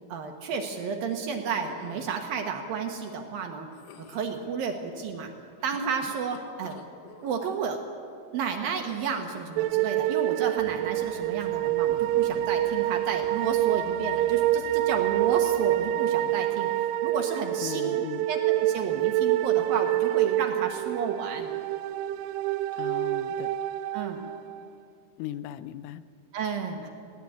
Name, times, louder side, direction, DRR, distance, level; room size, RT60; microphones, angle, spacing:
voice 1, 0.1-3.7 4.0-5.3 5.6-6.8 7.2-7.8 8.3-16.7 17.0-18.0 18.3-21.5 23.9-24.2 26.3-26.9, right 6 dB, 65° right, 3 dB, 2.5 m, -32 dB
sound 1, 1.6-2.2 3.7-4.4 5.6-7.3 8.9-9.6 11.3-11.8 12.2-12.6 13.9-14.4, left 7 dB, 70° left, 2.5 m, -49 dB
sound 2, 9.6-24.7, right 14 dB, 90° right, 3.2 m, -27 dB
sound 3, 10.6-15.9, right 1 dB, 10° left, 7.2 m, -53 dB
voice 2, 17.6-18.3 22.8-23.5 25.2-26.0, left 13 dB, 90° left, 14 dB, 3.2 m, -38 dB
21.0 x 16.5 x 8.6 m, 2.4 s
omnidirectional pair, 5.5 m